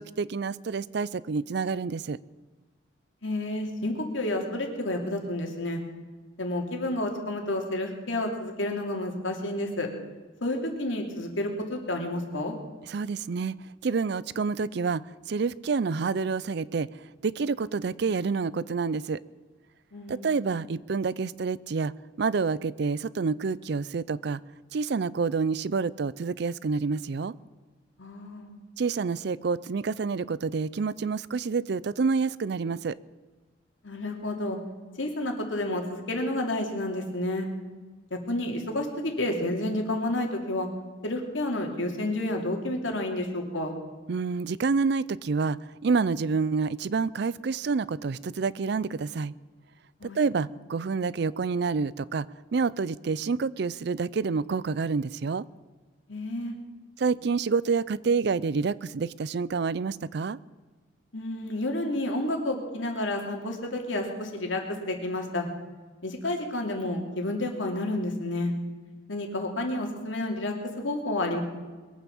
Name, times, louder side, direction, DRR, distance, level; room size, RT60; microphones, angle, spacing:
voice 1, 0.0-2.2 12.9-13.6 13.8-15.0 15.3-16.9 17.2-19.2 20.1-24.4 24.7-27.3 28.8-32.9 44.1-49.3 50.1-52.3 52.5-55.5 57.0-60.4, right 4 dB, 60° right, 20 dB, 0.4 m, -28 dB
voice 2, 3.2-5.8 6.4-9.9 10.4-12.5 19.9-20.4 28.0-28.5 33.8-34.6 35.0-37.5 38.1-40.7 41.0-43.7 50.0-50.2 56.1-56.6 61.1-65.5 66.0-68.5 69.1-71.4, left 1 dB, 90° left, 2 dB, 2.8 m, -30 dB
22.0 x 8.6 x 7.1 m, 1.3 s
head